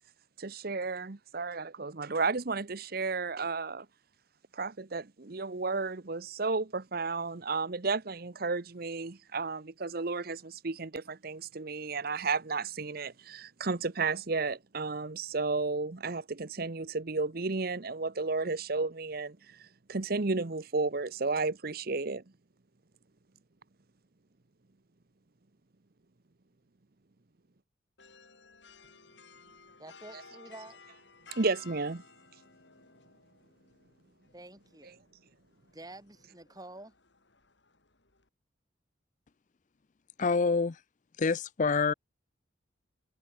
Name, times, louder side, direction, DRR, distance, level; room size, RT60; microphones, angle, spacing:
voice 1, 0.4-3.9 4.5-22.2 30.1-30.2 31.4-32.0, right 3 dB, 50° right, 0.9 m, -33 dB
sound 1, 28.0-38.3, left 4 dB, 65° left, 3.3 m, -57 dB
voice 2, 29.8-30.8 34.3-35.0 35.6-36.9, right 2 dB, 20° right, 3.6 m, -49 dB
voice 3, 40.2-40.8 41.2-41.9, left 4 dB, 40° left, 0.5 m, -26 dB
head